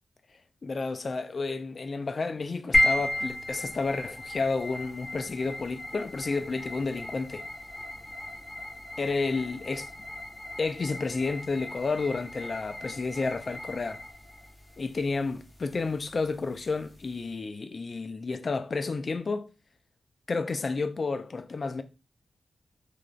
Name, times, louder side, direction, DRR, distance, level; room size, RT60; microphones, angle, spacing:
voice 1, 0.6-7.5 9.0-9.9 10.6-14.0 14.8-19.5 20.3-21.8, left 4 dB, 50° left, 0.3 m, -31 dB
sound 1, 2.7-17.2, left 1 dB, 30° left, 0.9 m, -34 dB
3.1 x 2.3 x 2.4 m
wide cardioid pair, 95°, 0 cm